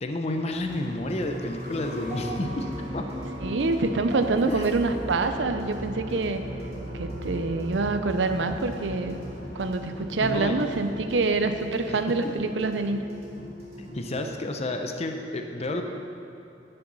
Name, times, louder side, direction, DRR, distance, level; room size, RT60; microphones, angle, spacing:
voice 1, 0.0-3.1 4.5-4.7 6.7-6.8 10.0-10.6 11.9-12.0 13.8-15.8, left 1 dB, 35° left, 4 dB, 0.6 m, -31 dB
sound 1, 0.6-14.2, equal, 35° right, 1.9 m, -37 dB
voice 2, 3.4-6.4 6.9-9.2 9.5-13.1, right 3 dB, 80° right, 8 dB, 0.6 m, -26 dB
11.0 x 5.6 x 5.5 m, 2.7 s
head